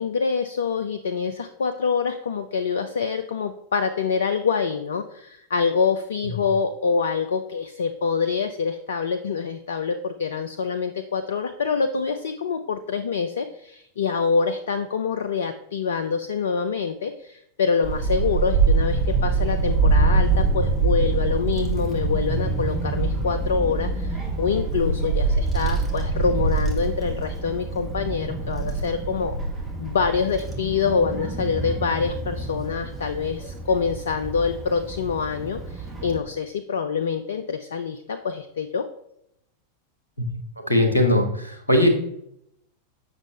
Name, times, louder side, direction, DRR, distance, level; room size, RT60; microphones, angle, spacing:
voice 1, 0.0-29.3 29.8-38.8, left 5 dB, 65° left, 7 dB, 0.4 m, -26 dB
Child speech kid speaking / Wind, 17.8-36.2, right 3 dB, 15° right, 1.7 m, -25 dB
voice 2, 40.7-41.9, left 1 dB, 80° left, 3 dB, 1.3 m, -19 dB
7.4 x 6.2 x 3.2 m, 0.75 s
figure-of-eight pair, 90°, 0 cm